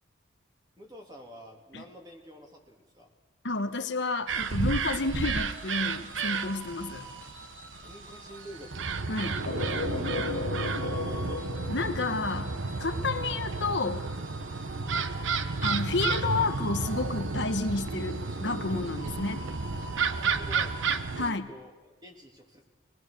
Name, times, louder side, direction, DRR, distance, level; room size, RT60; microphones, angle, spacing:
voice 1, 0.8-3.1 7.8-8.9 9.3-10.8 14.7-15.0 20.1-21.7 22.0-22.6, equal, 20° right, 1 dB, 2.9 m, -48 dB
voice 2, 3.4-7.0 9.1-9.4 11.7-12.5 12.8-14.1 15.6-19.5 21.2-21.5, left 3 dB, 65° left, 8 dB, 1.1 m, -30 dB
sound 1, 4.3-21.3, right 4 dB, 75° right, 0.9 m, -32 dB
sound 2, 5.0-20.9, left 1 dB, 60° right, 6.3 m, -48 dB
sound 3, 9.5-13.1, left 4 dB, 80° left, 0.7 m, -36 dB
23.0 x 20.0 x 6.6 m, 1.2 s
head